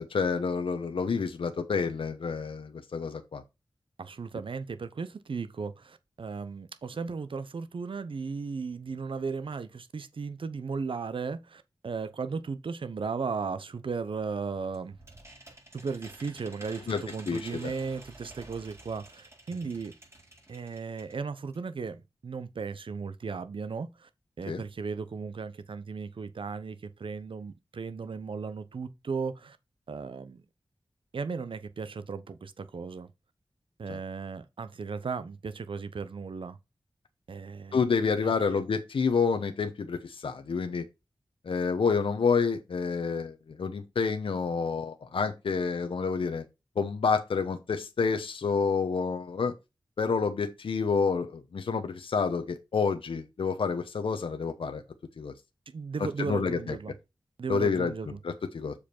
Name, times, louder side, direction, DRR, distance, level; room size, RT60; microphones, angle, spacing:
voice 1, 0.0-3.4 16.9-17.7 24.5-24.6 33.9-34.0 37.7-40.8 41.4-46.4 46.8-49.5 50.0-54.8 55.2-55.3 56.2-56.8 57.5-57.9 58.2-58.7, left 5 dB, 85° left, 0.9 m, -29 dB
voice 2, 4.0-14.9 15.7-19.9 20.5-24.1 24.4-29.6 29.9-30.4 31.1-33.1 33.8-36.6 37.3-37.8 38.2-38.6 55.7-56.9 57.4-58.2, right 5 dB, 75° right, 0.8 m, -36 dB
sound 1, 14.3-21.2 21.5-21.6 21.9-22.0, right 1 dB, 30° right, 4.5 m, -51 dB
7.0 x 5.0 x 4.4 m
cardioid pair, 55°, 9 cm